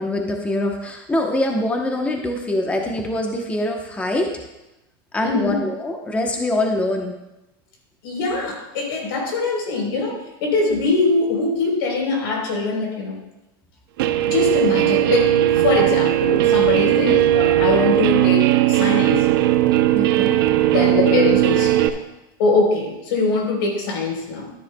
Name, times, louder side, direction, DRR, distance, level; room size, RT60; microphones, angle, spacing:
voice 1, 0.0-4.3 5.1-7.1 16.8-17.2 19.9-20.4, left 1 dB, 10° left, 2 dB, 0.9 m, -24 dB
voice 2, 5.2-5.6 8.0-13.2 14.3-19.3 20.7-21.9 22.4-24.5, left 3 dB, 80° left, 0 dB, 3.7 m, -22 dB
Guitar, 14.0-21.9, right 13 dB, 85° right, 0.7 m, -17 dB
13.0 x 10.0 x 2.3 m, 0.97 s
supercardioid pair, 140°, 12 cm